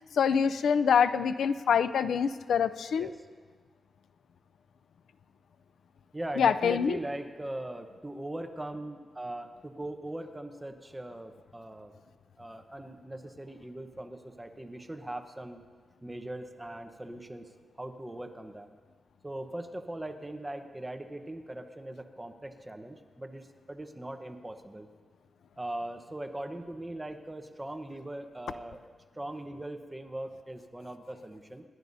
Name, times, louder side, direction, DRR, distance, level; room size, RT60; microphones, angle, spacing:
voice 1, 0.2-3.1 6.4-7.0, left 7 dB, 85° left, 13 dB, 0.4 m, -25 dB
voice 2, 6.1-11.9 12.4-15.6 16.0-18.7 19.2-24.9 25.6-28.8 29.1-31.6, right 1 dB, 10° right, 6 dB, 1.0 m, -40 dB
28.0 x 11.5 x 2.7 m, 1.5 s
wide cardioid pair, 110°, 0 cm